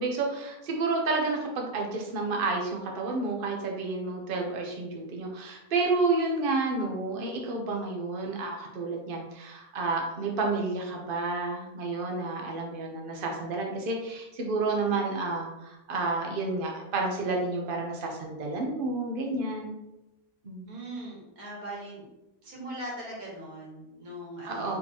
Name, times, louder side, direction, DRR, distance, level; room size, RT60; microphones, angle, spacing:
voice 1, 0.0-19.7 20.4-20.7 24.4-24.8, right 3 dB, 45° right, 1 dB, 0.8 m, -30 dB
voice 2, 20.7-22.0 22.4-24.8, right 1 dB, 70° right, -3 dB, 1.9 m, -40 dB
4.3 x 3.9 x 2.9 m, 0.94 s
omnidirectional pair, 1.6 m